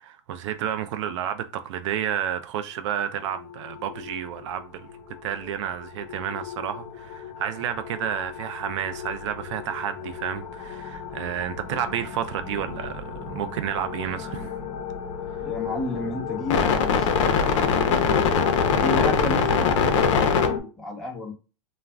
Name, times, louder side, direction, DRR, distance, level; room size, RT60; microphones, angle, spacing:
voice 1, 0.0-4.9 5.2-14.6, right 9 dB, 65° right, 0.4 m, -31 dB
sound 1, 3.3-4.2 4.9-5.2 6.0-20.6, left 6 dB, 70° left, 0.6 m, -26 dB
voice 2, 15.4-17.2 17.4-17.5 17.8-18.3 18.8-21.3, left 2 dB, ahead, 0.8 m, -32 dB
2.4 x 2.1 x 3.4 m
supercardioid pair, 140°, 16 cm